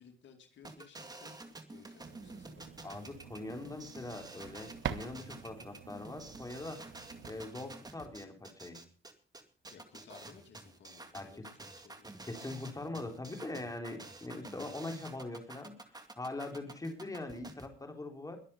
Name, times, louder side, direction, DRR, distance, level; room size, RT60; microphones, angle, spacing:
voice 1, 0.0-1.4 1.7-3.0 9.7-12.2, left 7 dB, 65° left, 5 dB, 2.6 m, -58 dB
sound 1, 0.6-17.7, right 2 dB, 20° right, 2.3 m, -50 dB
sound 2, 2.0-7.5, right 10 dB, 75° right, 1.1 m, -46 dB
voice 2, 2.8-6.9 7.2-8.8 11.1-11.5 12.3-15.8 16.2-18.4, left 2 dB, 15° left, 4 dB, 3.5 m, -42 dB
22.0 x 7.4 x 5.5 m, 0.41 s
cardioid pair, 90°, 20 cm